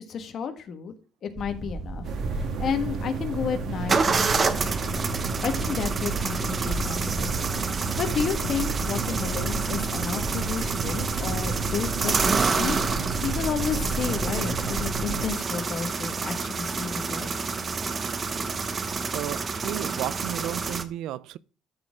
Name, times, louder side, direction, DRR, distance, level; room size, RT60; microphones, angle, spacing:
voice 1, 0.1-0.9 1.2-2.1 2.3-5.1 5.4-17.4, left 6 dB, 55° left, 1.4 m, -32 dB
sound 1, 1.4-3.3 3.9-20.8, right 4 dB, 35° right, 0.9 m, -29 dB
sound 2, 2.0-15.3, right 3 dB, 65° right, 1.4 m, -31 dB
voice 2, 19.1-21.4, right 14 dB, 80° right, 0.3 m, -33 dB
12.5 x 4.2 x 3.6 m
cardioid pair, 100°, 0 cm